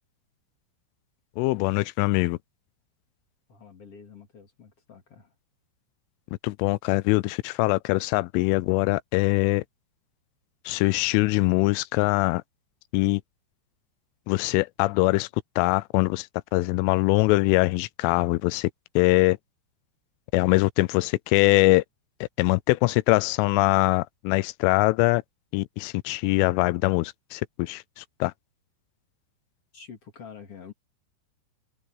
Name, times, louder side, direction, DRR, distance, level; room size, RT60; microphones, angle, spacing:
voice 1, 1.4-2.4 6.4-9.6 10.7-12.4 12.9-13.2 14.3-15.3 15.6-16.3 16.5-18.7 19.0-19.4 20.3-21.8 22.4-25.2 25.5-28.3, left 22 dB, 85° left, 3.1 m, -23 dB
voice 2, 3.5-5.3 14.8-15.0 29.7-30.7, left 6 dB, 40° left, 2.7 m, -47 dB
omnidirectional pair, 5.6 m